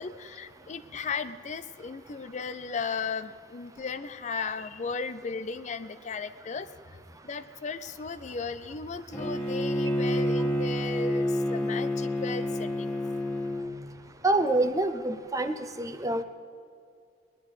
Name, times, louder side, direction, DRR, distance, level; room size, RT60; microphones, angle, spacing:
voice 1, 0.0-7.0 7.2-12.9, left 5 dB, 40° left, 12 dB, 0.5 m, -36 dB
Bowed string instrument, 9.1-13.7, left 1 dB, 10° left, 1.9 m, -28 dB
voice 2, 14.2-16.2, right 2 dB, 20° right, 9 dB, 0.7 m, -26 dB
21.5 x 11.0 x 4.8 m, 2.3 s
head